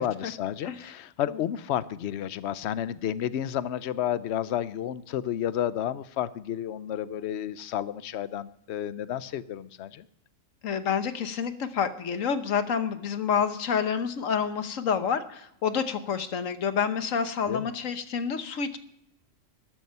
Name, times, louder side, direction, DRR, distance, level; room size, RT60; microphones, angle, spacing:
voice 1, 0.0-10.0 17.5-17.7, left 10 dB, 60° left, 16 dB, 0.9 m, -31 dB
voice 2, 10.6-18.8, left 7 dB, 80° left, 10 dB, 1.4 m, -28 dB
12.5 x 12.0 x 5.6 m, 0.76 s
omnidirectional pair, 1.3 m